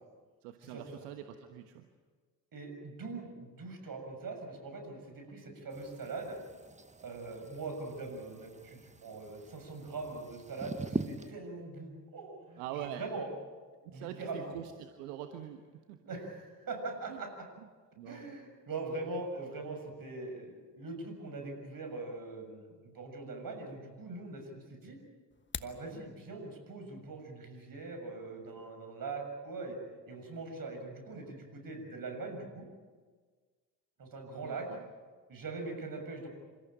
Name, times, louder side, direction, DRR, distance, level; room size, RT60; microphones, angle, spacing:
voice 1, 0.4-1.9 12.6-13.1 13.8-16.0 17.1-17.2 18.0-18.3 34.4-34.8, right 10 dB, 75° right, 6 dB, 1.4 m, -44 dB
voice 2, 2.5-6.4 7.0-13.3 13.9-14.5 16.1-17.3 18.1-25.0 25.6-29.8 30.1-32.7 34.0-34.7 35.3-36.3, right 3 dB, 45° right, 4 dB, 7.0 m, -42 dB
sound 1, 5.7-11.3, right 3 dB, 15° right, 1.4 m, -43 dB
sound 2, 25.3-25.8, left 5 dB, 25° left, 1.2 m, -41 dB
28.0 x 15.0 x 9.0 m, 1.5 s
hypercardioid pair, 50°, 47 cm